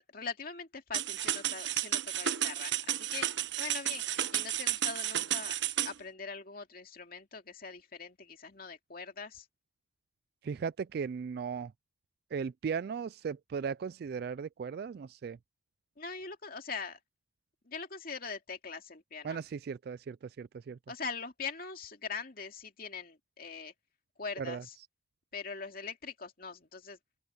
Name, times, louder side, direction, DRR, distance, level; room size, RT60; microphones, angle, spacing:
voice 1, 0.0-3.3 3.6-9.5 16.0-17.0 17.6-19.4 20.9-23.7 24.2-24.8 25.3-27.0, left 5 dB, 50° left, 2.5 m, -42 dB
sound 1, 0.9-5.9, right 11 dB, 70° right, 1.1 m, -32 dB
voice 2, 10.4-11.7 12.3-15.4 19.2-20.8 24.4-24.6, right 6 dB, 55° right, 0.3 m, -37 dB
open air
head